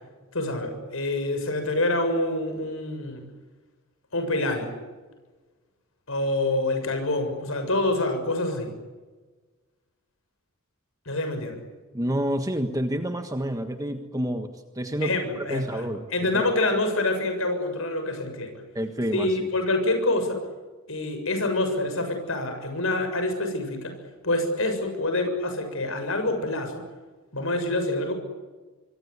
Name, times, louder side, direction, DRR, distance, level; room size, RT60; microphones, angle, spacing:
voice 1, 0.3-3.2 4.1-4.7 6.1-8.7 11.1-11.6 15.0-18.6 19.1-20.4 20.9-23.9 24.2-26.8 27.3-28.1, left 2 dB, 75° left, 7 dB, 7.1 m, -26 dB
voice 2, 11.9-16.1 16.3-16.5 18.7-19.5, equal, 15° right, 6 dB, 1.5 m, -29 dB
26.0 x 24.0 x 8.3 m, 1.3 s
head